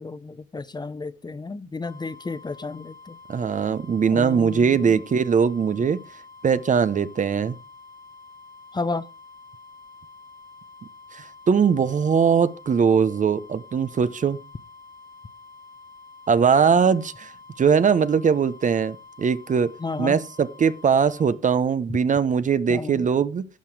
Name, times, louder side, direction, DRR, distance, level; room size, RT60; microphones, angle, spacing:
voice 1, 0.0-3.2 4.1-5.0 8.7-9.1 19.8-20.2 22.7-23.1, left 3 dB, 20° left, 0.7 m, -32 dB
sound 1, 1.8-21.4, left 3 dB, 85° right, 3.4 m, -47 dB
voice 2, 3.3-6.0 6.4-7.6 11.1-14.4 16.3-17.3 17.6-19.7 20.0-23.5, right 6 dB, 40° right, 0.8 m, -21 dB
11.5 x 7.0 x 4.7 m
cardioid pair, 90°, 20 cm